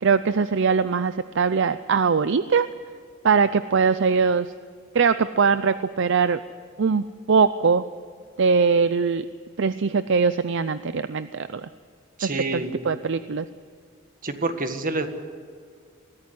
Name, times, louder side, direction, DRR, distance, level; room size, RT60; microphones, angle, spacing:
voice 1, 0.0-2.7 3.2-4.5 4.9-6.4 6.8-7.9 8.4-9.3 9.6-11.7 12.2-13.5, right 5 dB, 60° right, 13 dB, 0.5 m, -21 dB
voice 2, 12.2-12.8 14.2-15.1, right 3 dB, 40° right, 7 dB, 1.8 m, -27 dB
22.0 x 15.5 x 9.7 m, 2.1 s
head